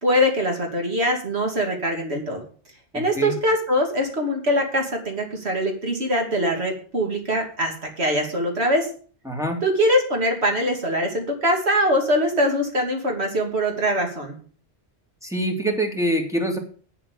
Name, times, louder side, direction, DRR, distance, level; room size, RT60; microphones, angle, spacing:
voice 1, 0.0-2.4 2.9-8.9 9.6-14.4, equal, 65° right, 2 dB, 2.8 m, -23 dB
voice 2, 2.9-3.3 9.3-9.6 15.2-16.6, right 1 dB, 5° right, 2 dB, 2.5 m, -25 dB
8.4 x 7.7 x 8.6 m, 0.43 s
omnidirectional pair, 1.2 m